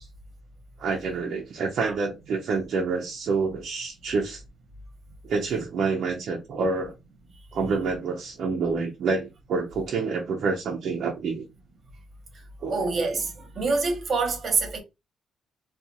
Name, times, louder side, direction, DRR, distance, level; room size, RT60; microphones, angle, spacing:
voice 1, 0.8-4.4 5.2-6.9 7.5-11.4 12.6-12.9, right 4 dB, 65° right, 0.6 m, -27 dB
voice 2, 12.7-14.8, right 3 dB, 45° right, 1.1 m, -26 dB
2.4 x 2.4 x 2.8 m
cardioid pair, 90°, 0 cm